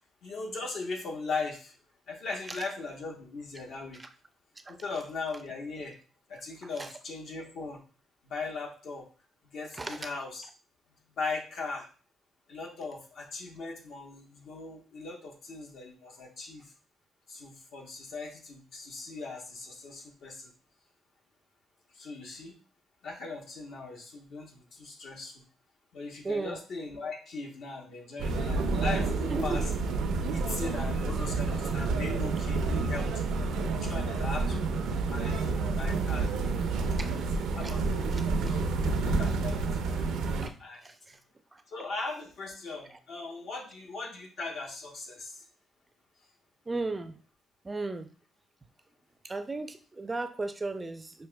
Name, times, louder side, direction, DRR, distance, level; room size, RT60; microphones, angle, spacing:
voice 1, 0.2-1.7 2.1-4.0 4.7-6.0 6.3-7.8 8.2-9.1 9.4-10.5 11.1-11.9 12.5-16.7 17.3-20.5 21.9-22.6 23.0-25.3 25.9-29.7 30.3-33.2 33.8-34.8 35.1-36.6 37.0-37.1 37.5-37.8 38.4-38.7 39.0-40.1 40.6-40.9 41.7-45.4, left 3 dB, 70° left, 1 dB, 1.0 m, -39 dB
voice 2, 26.2-26.6 29.3-29.6 37.0-37.1 37.6-37.7 38.4-38.5 40.4-40.5 40.8-41.2 46.7-47.2 47.6-48.1 49.2-51.3, right 3 dB, 25° right, 8 dB, 0.4 m, -35 dB
sound 1, 28.2-40.5, right 3 dB, 85° right, 0.5 m, -29 dB
5.6 x 2.6 x 2.2 m, 0.37 s
cardioid pair, 90°, 0 cm